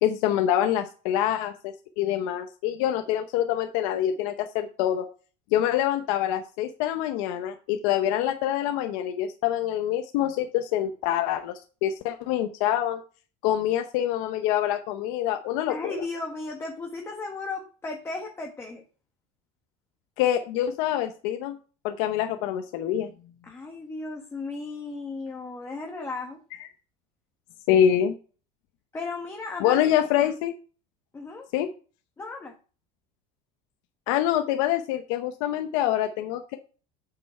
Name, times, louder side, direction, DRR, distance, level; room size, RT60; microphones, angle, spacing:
voice 1, 0.0-5.1 5.5-11.5 11.8-13.0 13.4-16.0 20.2-21.6 21.8-23.1 27.7-28.1 29.6-30.5 31.5-31.7 34.1-36.6, left 11 dB, 80° left, 6 dB, 0.9 m, -25 dB
voice 2, 15.7-18.8 23.5-26.4 28.9-29.9 30.2-30.3 31.1-31.5 32.2-32.5, left 3 dB, 15° left, 1 dB, 1.3 m, -35 dB
7.8 x 6.0 x 4.4 m, 0.37 s
cardioid pair, 155°, 17 cm